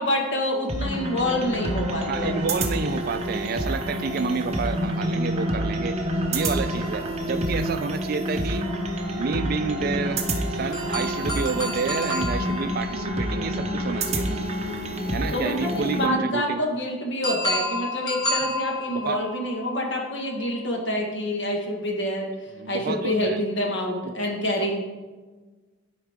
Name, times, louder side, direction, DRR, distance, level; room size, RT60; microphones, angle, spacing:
voice 1, 0.0-2.5 15.3-22.2 22.7-24.8, left 1 dB, 60° left, 0 dB, 1.5 m, -27 dB
sound 1, 0.7-16.1, right 1 dB, 30° right, 0.8 m, -28 dB
voice 2, 2.1-5.9 6.3-8.6 9.2-14.4 15.0-16.6 18.4-18.6 18.9-19.2 22.6-23.4 24.0-24.1 24.6-24.8, right 4 dB, 45° right, 10 dB, 0.4 m, -29 dB
sound 2, 6.4-8.1 10.7-14.6 17.2-20.7, left 1 dB, 20° left, 1.3 m, -32 dB
12.0 x 4.8 x 3.6 m, 1.3 s
head